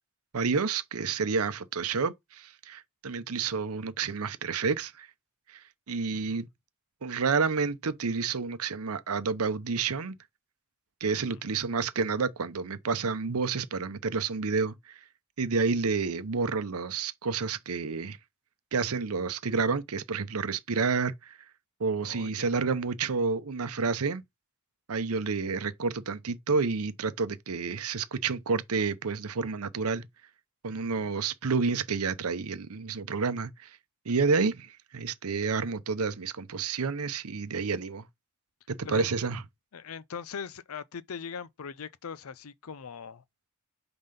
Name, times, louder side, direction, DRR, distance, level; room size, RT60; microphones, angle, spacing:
voice 1, 0.3-5.1 5.5-6.5 7.0-10.2 11.0-15.0 15.4-18.2 18.7-21.4 21.8-24.2 24.9-30.0 30.6-33.8 34.0-38.1 38.7-39.4, right 4 dB, 80° right, 0.7 m, -29 dB
voice 2, 22.0-22.5 30.8-31.1 38.8-39.1 39.7-43.2, left 6 dB, 75° left, 0.6 m, -41 dB
5.7 x 3.9 x 5.1 m
head